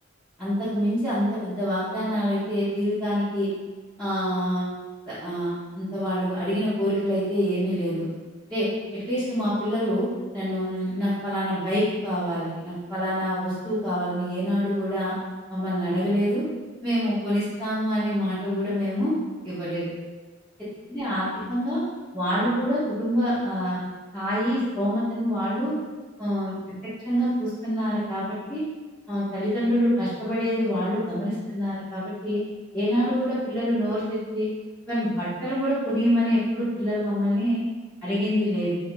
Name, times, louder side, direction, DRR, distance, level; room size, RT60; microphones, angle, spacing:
voice 1, 0.4-3.5 4.0-4.7 5.1-8.1 8.5-8.7 9.1-10.1 10.3-15.1 15.5-16.4 16.8-19.1 19.4-19.9 20.9-21.8 22.1-23.8 24.1-25.7 26.2-26.6 27.0-28.6 29.1-32.4 32.7-34.5 34.9-37.6 38.0-38.7, equal, 5° left, -16 dB, 1.3 m, -26 dB
3.6 x 2.9 x 3.6 m, 1.3 s
head